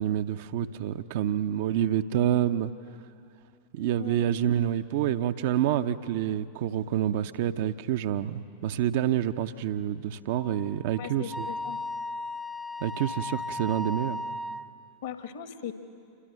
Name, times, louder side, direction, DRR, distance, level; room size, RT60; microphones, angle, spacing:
voice 1, 0.0-2.7 3.7-11.5 12.8-14.2, right 10 dB, 50° right, 9 dB, 0.8 m, -27 dB
voice 2, 3.9-4.3 11.0-11.8 15.0-15.7, left 9 dB, 55° left, 8 dB, 1.5 m, -39 dB
Wind instrument woodwind instrument, 10.3-14.7, left 2 dB, ahead, 0.6 m, -36 dB
27.5 x 23.0 x 6.5 m, 2.4 s
figure-of-eight pair, 90°, 0 cm